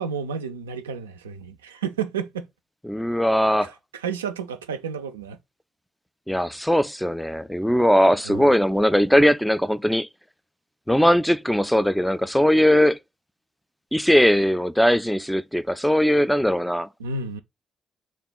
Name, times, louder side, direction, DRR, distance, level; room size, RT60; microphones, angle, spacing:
voice 1, 0.0-2.5 3.6-5.4 8.2-8.5 17.0-17.4, right 6 dB, 90° right, 0.3 m, -31 dB
voice 2, 2.9-3.7 6.3-10.1 10.9-13.0 13.9-16.9, equal, 5° left, 0.4 m, -20 dB
3.5 x 2.4 x 3.8 m
hypercardioid pair, 40°, 0 cm